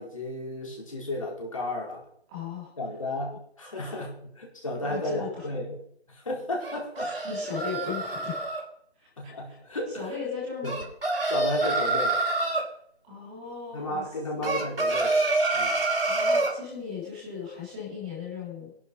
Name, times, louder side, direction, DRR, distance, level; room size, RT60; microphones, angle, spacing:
voice 1, 0.0-2.0 2.8-5.8 6.1-7.1 9.2-10.1 10.6-10.7 11.3-12.2 13.7-15.2 15.5-15.8, left 1 dB, 30° left, -1 dB, 4.7 m, -33 dB
voice 2, 2.3-2.7 3.7-4.0 4.8-5.5 7.0-8.5 8.9-9.6 9.9-10.9 13.0-14.0 14.3-14.6 16.0-18.7, left 6 dB, 5° right, -2 dB, 2.9 m, -37 dB
sound 1, 6.6-8.6 10.6-12.7 14.4-16.6, right 2 dB, 60° right, 3.9 m, -26 dB
21.0 x 11.5 x 5.3 m, 0.67 s
figure-of-eight pair, 175°, 33 cm